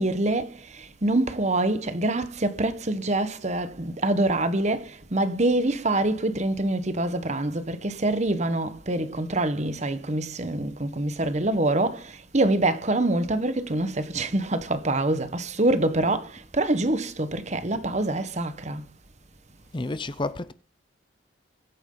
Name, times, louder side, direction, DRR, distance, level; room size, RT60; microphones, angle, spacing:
voice 1, 0.0-18.9, right 2 dB, 35° right, 1.3 m, -25 dB
voice 2, 19.7-20.5, left 2 dB, 25° left, 0.6 m, -30 dB
22.5 x 9.2 x 4.0 m
head